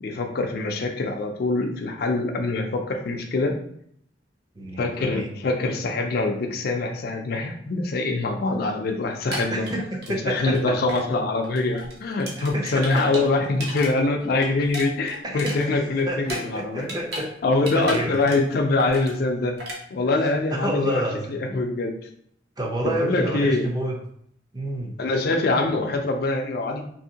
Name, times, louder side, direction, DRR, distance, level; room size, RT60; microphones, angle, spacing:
voice 1, 0.0-3.6 4.8-9.7 10.2-17.0 17.4-19.5 19.9-21.0 21.3-22.0 22.8-23.7 25.0-26.8, left 2 dB, 55° left, 3 dB, 0.4 m, -24 dB
voice 2, 4.5-5.3 9.5-10.8 12.4-13.3 15.2-15.6 16.1-17.3 17.7-18.2 20.1-20.2 20.5-21.3 22.6-24.0 24.5-25.0, right 1 dB, 20° right, 0 dB, 0.5 m, -29 dB
sound 1, 9.1-10.6 10.9-11.1 11.4-13.9 14.2-17.3 17.5-18.5 18.8-19.2 19.6-19.8, equal, 60° right, 0.8 m, -35 dB
2.8 x 2.6 x 2.7 m, 0.66 s
head